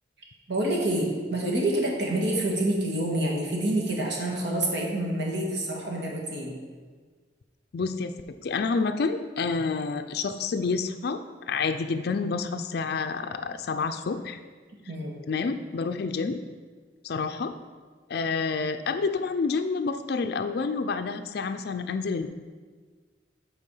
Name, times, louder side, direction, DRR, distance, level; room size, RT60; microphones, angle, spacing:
voice 1, 0.5-6.6 14.9-15.2, right 1 dB, 70° right, -2 dB, 1.6 m, -27 dB
voice 2, 7.7-8.1 8.4-11.2 11.5-14.4 15.3-16.4 17.0-17.5 18.1-22.3, left 4 dB, 60° left, 8 dB, 0.4 m, -28 dB
8.3 x 4.1 x 5.4 m, 1.5 s
head